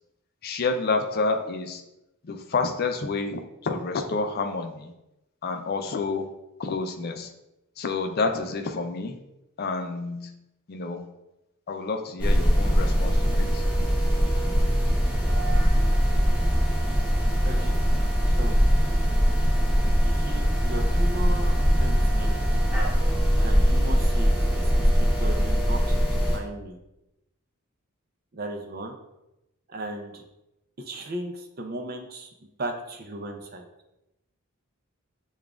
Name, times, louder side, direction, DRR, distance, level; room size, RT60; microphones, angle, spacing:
voice 1, 0.4-1.8 2.2-4.9 5.4-6.3 6.6-7.3 7.8-9.2 9.6-10.4 10.7-11.1 11.7-13.6, left 3 dB, 45° left, 6 dB, 0.4 m, -29 dB
sound 1, 12.2-26.4, equal, 5° right, 0.9 m, -22 dB
voice 2, 17.4-17.8 18.3-18.6 20.0-22.4 23.4-26.8 28.3-28.9 29.7-30.2 30.8-32.3 32.6-33.7, right 1 dB, 45° right, 4 dB, 0.5 m, -36 dB
6.8 x 2.4 x 2.4 m, 0.91 s
head